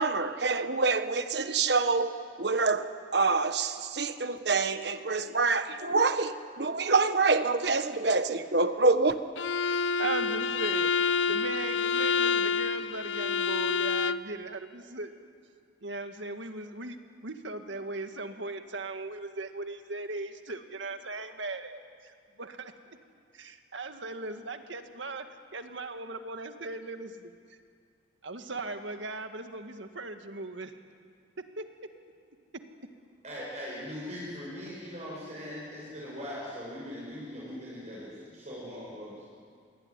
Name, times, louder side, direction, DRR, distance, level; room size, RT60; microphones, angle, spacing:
voice 1, 0.0-2.9 3.1-9.2, right 3 dB, 60° right, 10 dB, 1.3 m, -26 dB
Bowed string instrument, 9.4-14.3, left 5 dB, 80° left, 0.7 m, -28 dB
voice 2, 9.6-15.2 15.8-22.1 22.4-22.7 23.3-25.3 25.5-27.6 28.2-30.7 31.4-31.6 32.5-32.6, right 2 dB, 80° right, 7 dB, 1.9 m, -38 dB
voice 3, 33.2-39.3, equal, 35° right, -6 dB, 7.5 m, -40 dB
27.0 x 22.0 x 9.9 m, 2.2 s
head